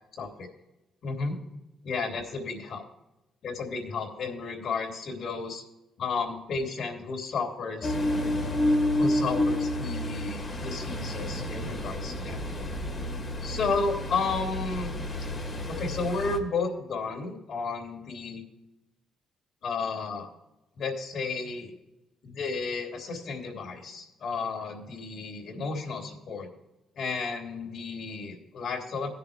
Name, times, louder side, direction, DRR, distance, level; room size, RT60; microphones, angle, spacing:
voice 1, 0.1-0.5 1.0-1.4 1.8-2.9 3.4-5.6 6.0-7.9 9.0-12.7 13.4-14.9 15.7-18.4 19.6-20.3 20.7-21.7 22.2-26.5 26.9-29.1, left 4 dB, 65° left, 2 dB, 3.0 m, -32 dB
Ocean, 7.8-16.4, left 1 dB, 30° left, 2.0 m, -30 dB
17.0 x 6.8 x 3.5 m, 0.95 s
cardioid pair, 90°, 0 cm